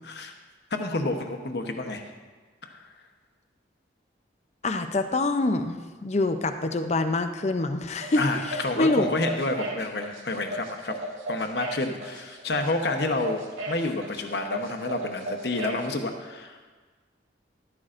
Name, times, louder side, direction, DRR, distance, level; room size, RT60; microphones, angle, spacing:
voice 1, 0.7-2.1 2.6-2.9 8.1-11.0 11.3-16.7, left 2 dB, 60° left, 5 dB, 1.0 m, -29 dB
voice 2, 4.6-9.1, left 2 dB, 35° left, 8 dB, 0.5 m, -26 dB
sound 1, 8.0-15.9, right 1 dB, 90° right, 1.9 m, -36 dB
14.0 x 12.5 x 2.6 m, 1.4 s
head